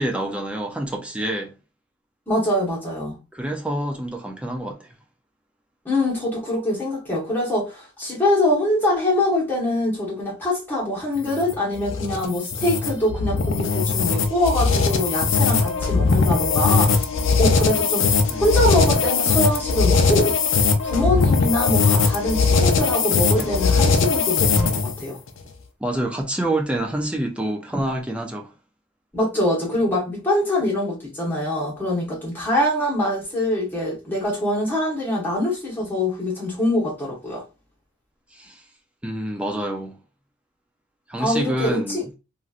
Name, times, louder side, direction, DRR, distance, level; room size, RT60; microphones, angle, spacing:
voice 1, 0.0-1.5 3.3-4.9 18.3-18.5 23.4-23.5 25.8-28.5 38.3-38.6 39.0-40.0 41.1-42.0, right 1 dB, 5° right, 0.4 m, -27 dB
voice 2, 2.3-3.2 5.8-16.9 17.4-18.1 18.4-20.3 20.8-25.2 29.1-37.4 41.2-42.1, left 1 dB, 10° left, 1.2 m, -23 dB
sound 1, 11.2-25.0, left 4 dB, 65° left, 0.5 m, -20 dB
3.0 x 2.6 x 2.4 m
head